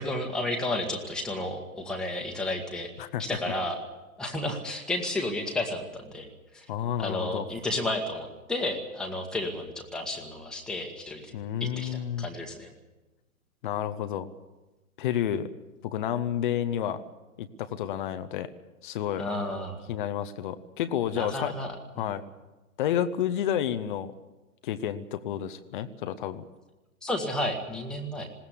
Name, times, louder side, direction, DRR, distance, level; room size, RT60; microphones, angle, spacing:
voice 1, 0.0-2.9 3.2-3.8 4.2-6.3 6.5-6.6 7.0-11.3 11.6-12.7 19.2-19.8 21.1-22.1 27.0-28.3, left 1 dB, ahead, 0 dB, 1.7 m, -32 dB
voice 2, 6.7-7.5 11.3-12.3 13.6-14.3 15.0-15.5 15.8-17.0 17.4-18.5 18.8-19.2 19.9-21.5 22.0-22.2 22.8-24.1 24.6-26.4, left 10 dB, 35° left, 11 dB, 1.0 m, -30 dB
20.5 x 17.5 x 8.4 m, 1.1 s
figure-of-eight pair, 120°, 43 cm